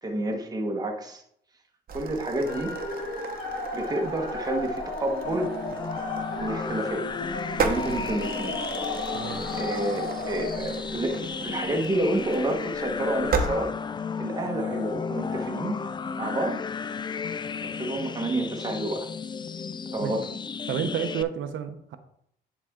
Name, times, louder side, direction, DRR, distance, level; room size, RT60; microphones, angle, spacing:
voice 1, 0.0-1.2 1.9-2.7 3.7-5.5 6.4-7.1 7.6-8.6 9.5-13.7 14.2-15.8 16.2-16.6 17.6-19.1 19.9-20.3, right 1 dB, 20° right, 1.2 m, -29 dB
sound 1, 1.9-13.5, right 5 dB, 45° right, 1.0 m, -35 dB
sound 2, 2.4-10.6, left 2 dB, 60° left, 2.5 m, -34 dB
sound 3, 5.2-21.2, left 6 dB, 25° left, 0.4 m, -34 dB
voice 2, 9.1-9.5 20.0-20.1 20.7-22.0, right 9 dB, 75° right, 0.8 m, -30 dB
10.0 x 4.1 x 3.7 m
cardioid pair, 90°, 20 cm